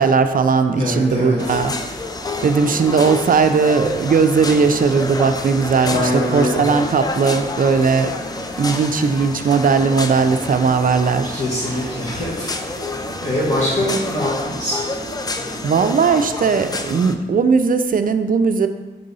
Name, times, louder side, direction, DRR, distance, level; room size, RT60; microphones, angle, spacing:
voice 1, 0.0-1.7 2.4-8.1 8.6-11.4 15.6-18.7, right 5 dB, 50° right, 8 dB, 0.4 m, -17 dB
voice 2, 0.8-1.6 5.8-6.6 11.3-12.9 13.2-14.8, left 1 dB, 35° left, -8 dB, 1.4 m, -23 dB
sound 1, 1.3-16.3, right 2 dB, 25° right, 0.7 m, -36 dB
sound 2, 1.4-17.1, left 3 dB, 20° left, 0.4 m, -29 dB
5.4 x 3.9 x 5.4 m, 1.2 s
wide cardioid pair, 160°, 19 cm